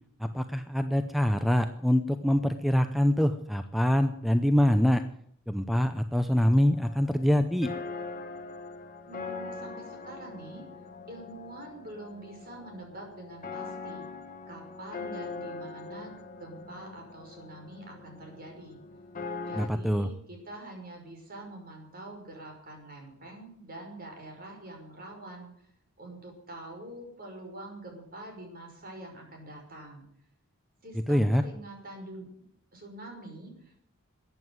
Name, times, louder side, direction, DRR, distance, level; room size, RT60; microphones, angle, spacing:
voice 1, 0.2-5.0 5.5-7.7 19.5-20.1 31.1-31.4, equal, ahead, 9 dB, 0.6 m, -25 dB
sound 1, 6.4-19.7, left 4 dB, 40° left, 1.5 m, -42 dB
voice 2, 9.1-10.7 11.1-14.1 14.5-18.8 19.5-25.5 26.0-30.0 30.8-32.4 32.7-33.8, right 1 dB, 45° right, 2 dB, 5.6 m, -45 dB
14.5 x 9.3 x 9.4 m, 0.70 s
head